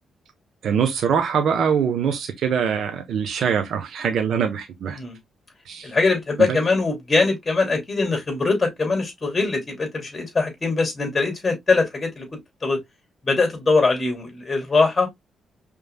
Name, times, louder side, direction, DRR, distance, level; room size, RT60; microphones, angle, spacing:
voice 1, 0.6-5.0 5.7-5.9 6.5-6.6, right 7 dB, 70° right, 0.9 m, -23 dB
voice 2, 5.8-12.8 13.2-15.1, left 3 dB, 30° left, 2.5 m, -22 dB
5.4 x 3.3 x 2.2 m
cardioid pair, 80°, 0 cm